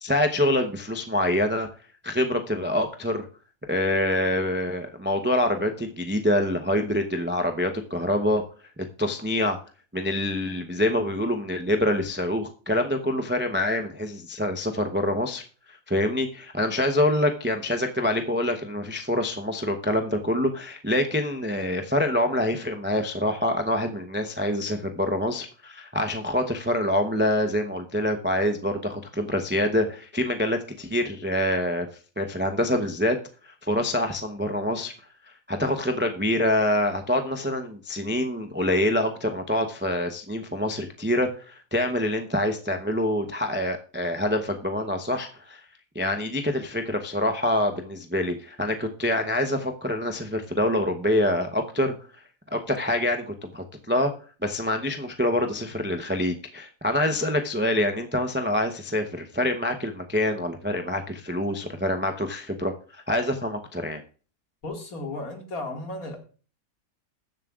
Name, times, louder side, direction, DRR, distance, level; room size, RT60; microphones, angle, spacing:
voice 1, 0.0-1.7 2.0-3.3 3.7-8.4 9.0-9.6 9.9-15.4 15.9-31.9 32.2-33.2 33.4-34.9 35.5-45.6 45.9-51.9 52.5-54.1 54.4-64.0, left 1 dB, 15° right, 5 dB, 0.4 m, -26 dB
voice 2, 64.6-66.2, left 2 dB, 65° left, 2 dB, 2.5 m, -34 dB
20.5 x 7.4 x 2.4 m, 0.39 s
omnidirectional pair, 1.7 m